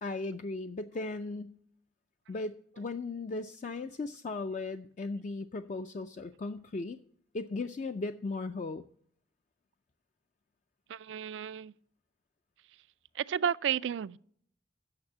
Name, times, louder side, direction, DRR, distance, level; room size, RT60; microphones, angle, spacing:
voice 1, 0.0-1.6 2.3-7.0 7.3-8.8, left 3 dB, 40° left, 0.4 m, -37 dB
voice 2, 10.9-11.7 13.2-14.2, right 8 dB, 75° right, 0.3 m, -32 dB
8.8 x 6.7 x 7.3 m
head